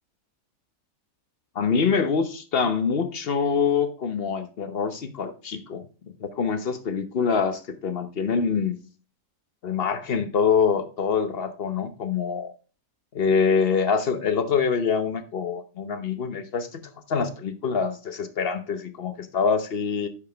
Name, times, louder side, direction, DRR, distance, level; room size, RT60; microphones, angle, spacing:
voice 1, 1.5-5.9 6.2-8.8 9.6-12.5 13.1-20.1, left 6 dB, 50° left, 0.8 m, -25 dB
10.0 x 5.0 x 3.4 m
omnidirectional pair, 1.7 m